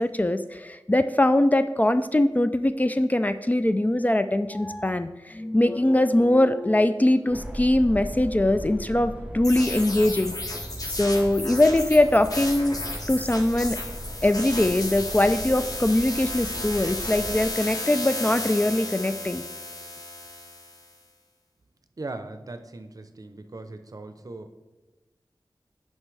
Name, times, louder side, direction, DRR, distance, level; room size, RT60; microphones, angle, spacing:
voice 1, 0.0-10.3 10.9-12.8 13.1-13.8 14.2-19.4, left 1 dB, 20° left, 10 dB, 0.3 m, -22 dB
sound 1, 7.3-17.5, right 1 dB, 15° right, 0.7 m, -38 dB
sound 2, 9.4-20.8, left 2 dB, 50° left, 1.2 m, -34 dB
voice 2, 22.0-24.5, right 2 dB, 50° right, 8 dB, 0.7 m, -39 dB
9.4 x 5.4 x 3.3 m, 1.1 s
wide cardioid pair, 60°, 8 cm